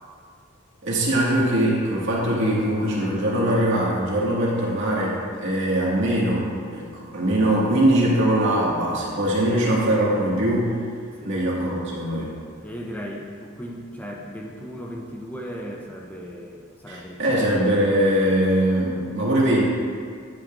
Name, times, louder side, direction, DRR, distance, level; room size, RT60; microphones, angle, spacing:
voice 1, 0.8-10.7 11.2-12.3 16.9-19.6, right 1 dB, 60° right, -5 dB, 2.0 m, -22 dB
voice 2, 12.6-17.3, equal, 10° left, -1 dB, 0.6 m, -36 dB
10.0 x 8.8 x 2.6 m, 2.1 s
head